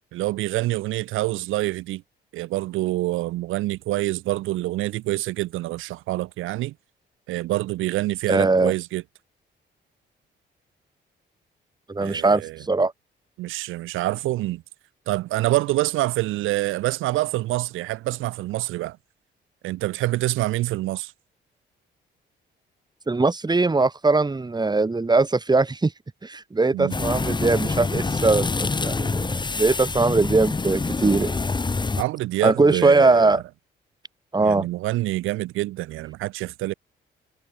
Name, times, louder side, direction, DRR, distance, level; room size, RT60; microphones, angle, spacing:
voice 1, 0.1-2.0 2.3-6.7 7.3-9.0 12.0-12.6 13.4-14.6 15.1-19.0 19.6-21.1 26.7-27.0 32.0-33.4 34.4-36.7, right 17 dB, 90° right, 0.8 m, -26 dB
voice 2, 8.3-8.7 11.9-12.9 23.1-25.9 26.2-31.3 32.4-33.4 34.3-34.7, right 3 dB, 20° right, 3.3 m, -21 dB
sound 1, 26.9-32.0, left 3 dB, 20° left, 1.7 m, -26 dB
cardioid pair, 90°, 20 cm